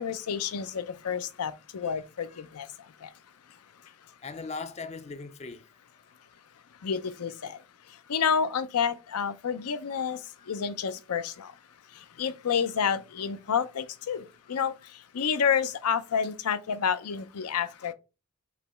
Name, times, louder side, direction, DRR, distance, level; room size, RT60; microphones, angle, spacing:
voice 1, 0.0-2.7 3.0-3.1 6.8-7.6 8.1-10.2 10.5-11.5 12.2-14.7 15.1-17.9, left 7 dB, 90° left, 0.5 m, -29 dB
voice 2, 4.2-5.7 10.4-10.5 14.5-14.6, left 4 dB, 30° left, 0.4 m, -40 dB
5.0 x 3.0 x 3.4 m
head